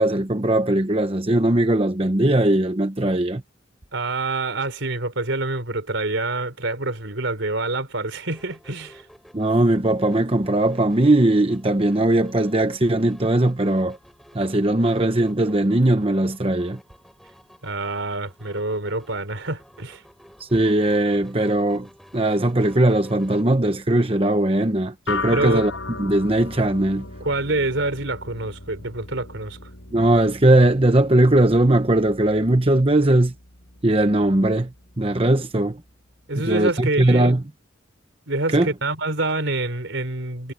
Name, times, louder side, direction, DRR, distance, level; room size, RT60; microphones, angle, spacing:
voice 1, 0.0-3.4 9.3-14.0 14.3-16.8 20.4-25.7 26.0-27.1 29.9-33.3 33.8-34.7 35.0-35.8 36.4-37.4 38.5-38.7, right 1 dB, 30° right, 1.0 m, -19 dB
voice 2, 3.9-9.0 17.6-20.0 25.3-25.6 27.2-29.6 36.3-37.3 38.3-40.5, right 2 dB, 75° right, 3.7 m, -26 dB
sound 1, 8.3-23.4, equal, ahead, 5.3 m, -51 dB
sound 2, 25.1-34.6, left 3 dB, 80° left, 6.7 m, -37 dB
head